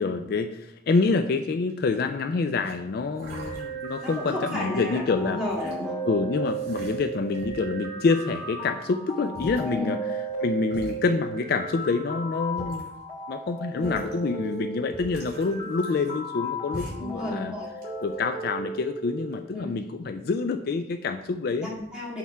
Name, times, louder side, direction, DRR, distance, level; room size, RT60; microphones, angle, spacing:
voice 1, 0.0-5.4 6.0-10.0 10.4-12.9 13.3-17.5 18.0-21.7, left 4 dB, 55° left, 7 dB, 0.3 m, -27 dB
sound 1, 1.7-2.1 2.6-2.7 3.2-4.4 5.0-5.8 6.4-7.7 8.1-8.6 9.1-9.2 9.3-9.7 10.3-10.4 10.7-10.9 11.8-11.9 12.4-13.0 13.8-14.1 14.5-14.6 14.9-16.4 16.7-17.2 17.6-18.2, equal, 55° right, 2.6 m, -42 dB
sound 2, 3.3-19.3, right 2 dB, 30° left, 1.9 m, -35 dB
voice 2, 4.0-6.0 9.7-9.9 13.7-13.9 17.0-17.7 19.5-19.8 21.6-22.2, left 1 dB, 5° right, -6 dB, 1.9 m, -33 dB
6.4 x 3.5 x 5.5 m, 0.83 s
head